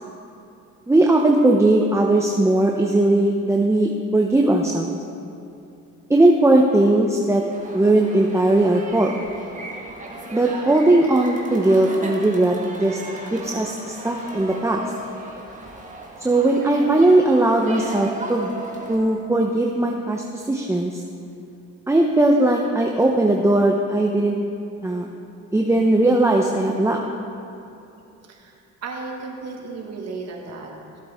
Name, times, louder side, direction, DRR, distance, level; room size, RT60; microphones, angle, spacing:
voice 1, 0.9-4.9 6.1-7.4 7.7-9.1 10.3-13.0 13.3-14.8 16.2-18.5 18.9-21.0 21.9-24.4 24.8-25.1 25.5-27.0, right 2 dB, 10° right, 1 dB, 0.7 m, -18 dB
sound 1, 7.5-19.0, right 2 dB, 25° right, 1.6 m, -36 dB
voice 2, 28.3-31.0, right 3 dB, 60° right, 0 dB, 1.8 m, -35 dB
14.5 x 7.9 x 3.6 m, 2.7 s
cardioid pair, 90°, 30 cm